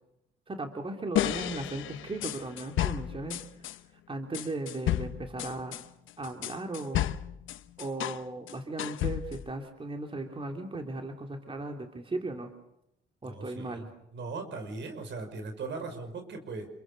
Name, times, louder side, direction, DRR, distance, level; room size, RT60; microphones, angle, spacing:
voice 1, 0.5-3.4 4.1-5.8 6.2-7.1 7.8-12.5 13.2-13.9, right 2 dB, 25° right, 4 dB, 3.2 m, -37 dB
sound 1, 1.2-3.8 4.3-8.2 8.5-9.5, left 12 dB, 80° left, 1.0 m, -32 dB
voice 2, 13.2-16.7, right 3 dB, 65° right, 7 dB, 5.6 m, -39 dB
28.0 x 23.0 x 6.8 m, 0.80 s
cardioid pair, 90°, 20 cm